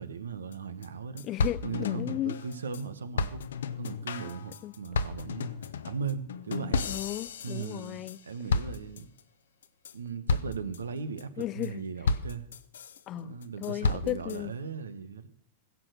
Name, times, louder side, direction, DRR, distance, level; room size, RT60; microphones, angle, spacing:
voice 1, 0.0-1.2 1.6-3.4 3.8-5.5 5.8-6.9 7.4-9.1 9.9-12.5 13.2-15.3, right 5 dB, 90° right, 1.1 m, -38 dB
sound 1, 0.5-0.6 0.8-0.9 1.2-2.8 3.2-8.2 8.5-9.2 9.6-9.9 10.3-10.8 11.2-11.7 12.1-13.0 13.4-14.4, left 4 dB, 80° left, 0.8 m, -32 dB
voice 2, 1.2-2.4 4.6-4.7 6.9-8.2 11.4-11.8 13.1-13.3 13.6-14.5, left 14 dB, 40° left, 0.4 m, -35 dB
16.0 x 7.0 x 6.5 m
hypercardioid pair, 105°, 0 cm